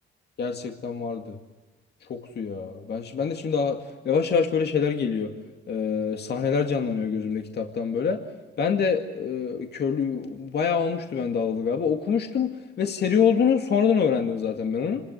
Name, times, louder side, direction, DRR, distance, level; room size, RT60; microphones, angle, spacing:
voice 1, 0.4-1.4 2.1-3.8 4.0-5.3 5.7-8.2 8.6-12.5 12.8-15.0, left 6 dB, 55° left, 4 dB, 2.2 m, -25 dB
27.0 x 20.0 x 8.2 m, 1.2 s
cardioid pair, 90°, 20 cm